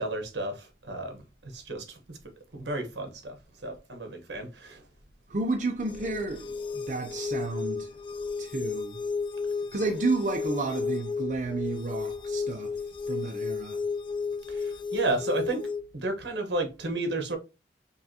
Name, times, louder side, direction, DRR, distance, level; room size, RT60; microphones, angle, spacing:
voice 1, 0.0-2.2 2.5-3.4 3.6-4.8 14.5-17.4, right 2 dB, 80° right, 1.1 m, -32 dB
voice 2, 5.3-7.9 8.4-9.0 9.7-13.8, right 3 dB, 45° right, 0.5 m, -31 dB
sound 1, 5.8-15.8, left 4 dB, 30° left, 0.3 m, -33 dB
5.5 x 2.4 x 2.8 m
head